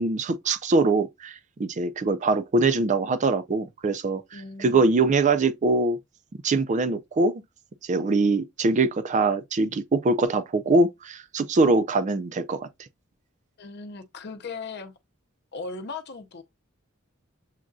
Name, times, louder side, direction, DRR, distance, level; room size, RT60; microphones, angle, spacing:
voice 1, 0.0-6.0 6.4-7.4 7.9-12.7, right 3 dB, 35° right, 0.4 m, -23 dB
voice 2, 4.3-4.9 13.6-14.9 15.5-16.4, left 4 dB, 55° left, 0.6 m, -38 dB
7.2 x 2.6 x 2.3 m
head